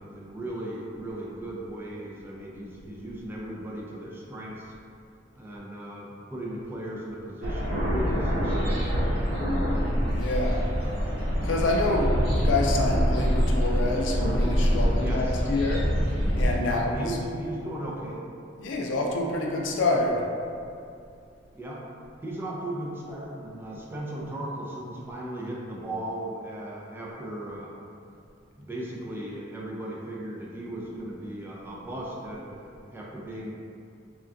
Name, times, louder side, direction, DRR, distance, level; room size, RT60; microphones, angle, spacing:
voice 1, 0.0-4.7 5.3-8.9 15.0-15.4 16.6-18.2 21.5-21.8 22.2-27.7 28.6-33.5, right 1 dB, 10° right, -5 dB, 0.4 m, -36 dB
sound 1, 7.4-16.5, equal, 55° right, 0.9 m, -25 dB
voice 2, 10.1-10.6 11.4-15.9 16.4-17.2 18.6-20.2, left 2 dB, 70° left, 0 dB, 0.4 m, -27 dB
3.5 x 2.2 x 2.5 m, 2.4 s
head